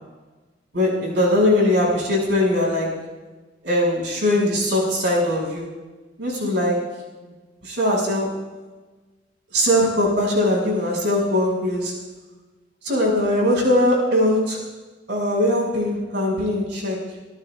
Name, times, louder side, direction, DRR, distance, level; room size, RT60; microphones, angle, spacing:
voice 1, 0.7-3.0 3.6-5.8 6.2-6.9 7.6-8.4 9.5-11.9 12.8-14.6 15.1-17.1, left 1 dB, 75° right, -2 dB, 6.3 m, -21 dB
28.5 x 17.0 x 2.5 m, 1.3 s
head